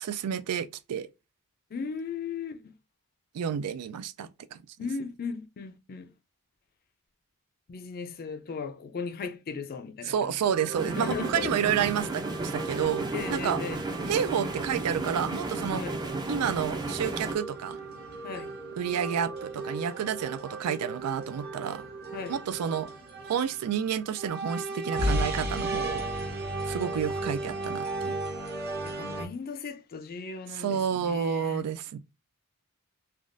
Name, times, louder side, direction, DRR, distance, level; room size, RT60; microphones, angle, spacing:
voice 1, 0.0-1.1 3.3-4.6 10.0-12.3 12.5-13.6 14.1-15.8 16.3-17.8 18.8-21.9 22.3-22.9 23.2-26.1 26.6-28.2 30.5-32.0, right 8 dB, 90° right, 0.4 m, -30 dB
voice 2, 1.7-2.7 4.8-6.1 7.7-10.4 10.6-11.5 13.1-13.8 15.7-16.0 18.2-18.5 22.1-22.4 29.0-31.6, left 5 dB, 40° left, 0.4 m, -37 dB
sound 1, 10.4-29.3, right 2 dB, 45° right, 0.8 m, -35 dB
sound 2, 10.8-17.4, right 2 dB, 20° right, 0.4 m, -34 dB
3.4 x 2.3 x 2.5 m
head